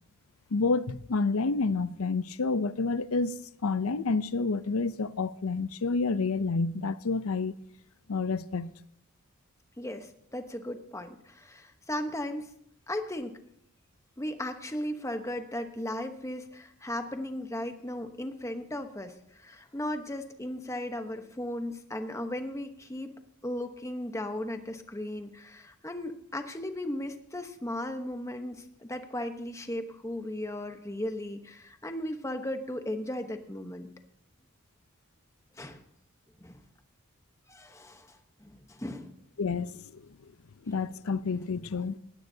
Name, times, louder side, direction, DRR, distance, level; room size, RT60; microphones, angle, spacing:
voice 1, 0.5-7.5 8.1-8.7 39.4-40.0 40.7-42.0, left 4 dB, 80° left, 0.6 m, -29 dB
voice 2, 9.8-12.5 12.9-13.3 14.2-23.1 23.4-33.9 35.5-35.8 36.4-36.6 37.5-39.1, left 1 dB, 15° left, 1.0 m, -36 dB
19.0 x 16.5 x 2.8 m
head